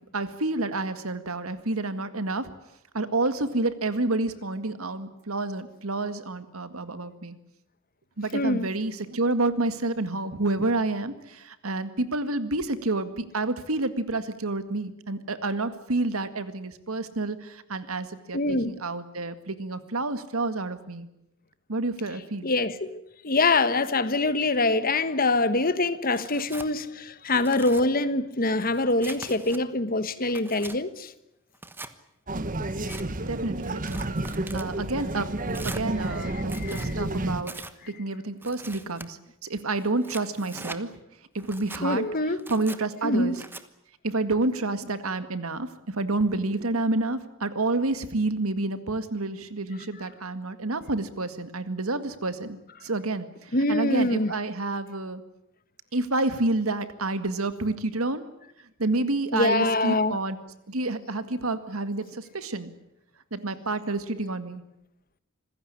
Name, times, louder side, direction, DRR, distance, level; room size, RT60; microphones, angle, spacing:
voice 1, 0.1-2.5 2.9-7.4 8.2-21.1 21.7-22.5 33.3-34.2 34.5-35.3 35.6-37.5 37.9-40.9 41.3-42.1 42.5-43.4 44.0-55.2 55.9-58.2 58.8-60.4 60.7-62.7 63.3-64.6, right 2 dB, 90° right, 1.9 m, -29 dB
voice 2, 8.3-8.7 18.3-18.8 22.4-31.1 32.9-33.0 36.6-36.9 41.8-42.4 43.0-43.4 53.5-54.3 59.3-60.2, left 2 dB, 40° left, 1.3 m, -24 dB
Tearing, 26.1-26.7 27.2-27.8 28.4-29.6 30.1-30.8 31.5-31.9 32.6-33.0 33.7-34.7 35.5-35.8 36.4-36.9 37.4-37.7 38.4-39.1 39.8-40.8 41.4-41.8 42.4-42.8 43.3-43.6, right 2 dB, 10° right, 1.2 m, -41 dB
sound 1, 32.3-37.4, right 1 dB, 40° right, 1.3 m, -31 dB
26.5 x 16.0 x 9.9 m
head